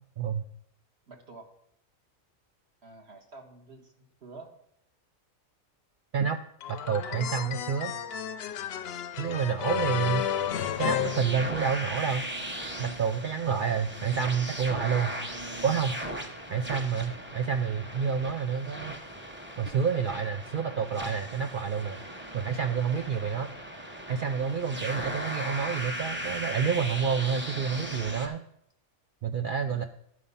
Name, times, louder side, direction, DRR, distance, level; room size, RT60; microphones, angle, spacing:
voice 1, 1.1-1.5 2.8-4.5 13.8-14.1 23.1-23.4 25.0-25.3 29.7-29.9, right 3 dB, 50° right, 1 dB, 1.6 m, -50 dB
sound 1, 6.6-12.0, left 9 dB, 65° left, 0.6 m, -32 dB
voice 2, 6.7-7.9 9.2-10.3 10.8-12.3 12.8-15.1 15.6-16.0 16.5-18.9 19.6-22.0 22.3-23.5 24.1-28.4 29.2-29.8, right 6 dB, 90° right, 7 dB, 0.4 m, -29 dB
sound 2, 10.0-28.3, equal, 10° right, 0.7 m, -38 dB
11.5 x 4.9 x 5.5 m, 0.73 s
omnidirectional pair, 1.5 m